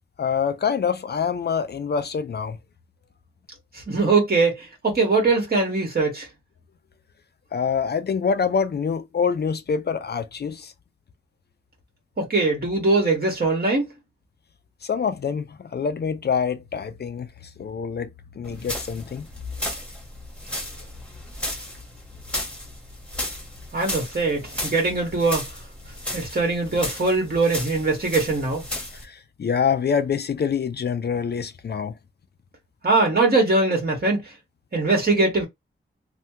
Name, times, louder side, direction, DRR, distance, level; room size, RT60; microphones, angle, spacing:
voice 1, 0.2-2.6 7.5-10.7 14.8-18.1 18.4-19.3 28.9-31.9, left 6 dB, 50° left, 0.4 m, -26 dB
voice 2, 3.7-6.3 12.2-13.9 23.7-25.5 26.1-28.6 32.8-34.2 34.7-35.5, right 3 dB, 50° right, 1.7 m, -21 dB
sound 1, 18.4-29.0, left 1 dB, 5° left, 1.2 m, -34 dB
3.2 x 2.3 x 2.8 m
wide cardioid pair, 130°, 21 cm